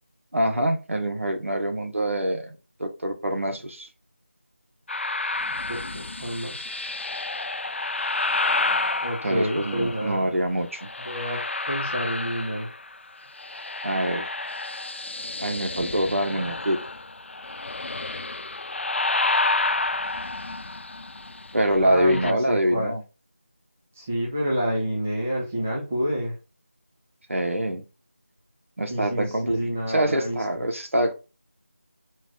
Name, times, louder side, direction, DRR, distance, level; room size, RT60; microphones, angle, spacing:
voice 1, 0.3-3.9 9.2-10.9 13.8-14.3 15.4-16.8 21.5-23.0 27.3-27.8 28.8-31.1, right 1 dB, 80° right, 1.1 m, -25 dB
sound 1, 4.9-10.2 10.7-13.0 13.2-22.3, left 2 dB, 60° left, 0.3 m, -30 dB
voice 2, 5.7-6.9 9.0-10.3 11.1-11.4 11.7-12.7 21.8-22.9 24.0-26.4 28.9-30.4, equal, 10° right, 0.4 m, -28 dB
4.5 x 2.3 x 3.8 m
figure-of-eight pair, 170°, 7 cm